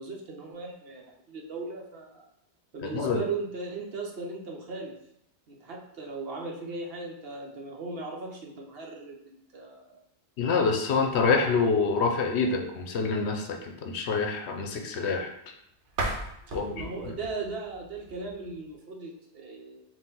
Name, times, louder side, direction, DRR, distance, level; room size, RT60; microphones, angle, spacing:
voice 1, 0.0-2.2 2.7-4.9 5.5-10.0 16.4-19.8, right 3 dB, 60° right, 0 dB, 0.9 m, -38 dB
voice 2, 2.8-3.2 10.4-15.3 16.5-16.8, left 4 dB, 75° left, 3 dB, 0.9 m, -26 dB
sound 1, 15.9-18.7, right 2 dB, 90° right, 1.1 m, -36 dB
4.2 x 2.5 x 3.8 m, 0.76 s
omnidirectional pair, 1.2 m